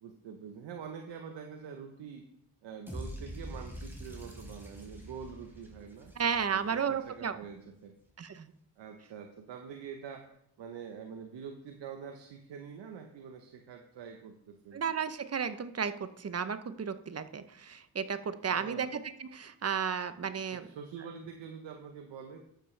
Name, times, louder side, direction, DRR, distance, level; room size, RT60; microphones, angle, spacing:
voice 1, 0.0-2.2 2.6-6.1 6.5-7.9 8.8-10.3 10.6-14.8 18.5-18.9 20.5-22.4, right 6 dB, 75° right, 4 dB, 1.1 m, -45 dB
sound 1, 2.9-7.0, equal, 5° right, 4.2 m, -44 dB
voice 2, 6.2-7.4 8.2-8.5 14.7-20.7, right 7 dB, 35° right, 12 dB, 0.8 m, -33 dB
12.0 x 7.8 x 3.3 m, 0.74 s
supercardioid pair, 60°, 43 cm